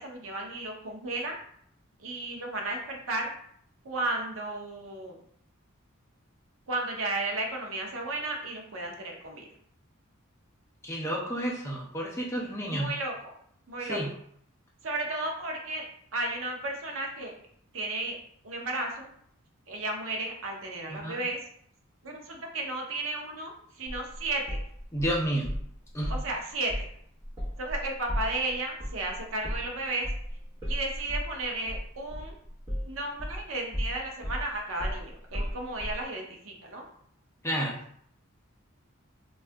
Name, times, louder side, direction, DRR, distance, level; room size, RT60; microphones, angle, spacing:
voice 1, 0.0-1.4 2.0-3.3 3.8-5.2 6.7-9.5 12.6-13.3 13.7-14.0 14.8-17.4 17.7-18.2 18.4-19.1 19.7-21.4 22.0-24.6 26.1-26.9 27.6-30.1 30.7-32.4 32.8-36.8, right 2 dB, 70° right, 1 dB, 0.6 m, -34 dB
voice 2, 10.8-13.0 13.8-14.1 20.9-21.2 24.9-25.5 25.9-26.1 37.4-37.8, right 1 dB, 15° left, -3 dB, 0.5 m, -30 dB
sound 1, 23.9-25.7 26.0-26.3 26.7-26.9 27.2-33.5 33.7-36.0, equal, 25° right, 0.9 m, -34 dB
2.6 x 2.3 x 3.3 m, 0.64 s
head